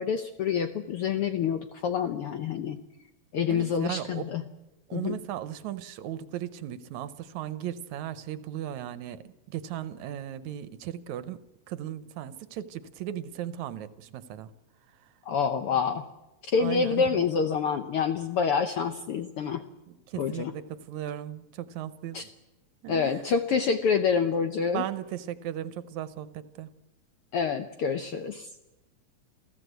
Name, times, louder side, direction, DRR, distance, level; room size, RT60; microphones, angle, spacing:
voice 1, 0.0-2.8 3.3-4.4 4.9-5.2 15.3-16.0 16.4-19.6 20.2-20.5 22.1-22.2 22.9-24.8 27.3-28.5, left 6 dB, 70° left, 8 dB, 1.4 m, -27 dB
voice 2, 3.5-4.2 4.9-14.5 16.6-17.2 19.9-22.3 22.8-23.2 24.7-26.7, right 11 dB, 75° right, 14 dB, 2.1 m, -37 dB
27.5 x 15.5 x 8.0 m, 1.0 s
omnidirectional pair, 3.5 m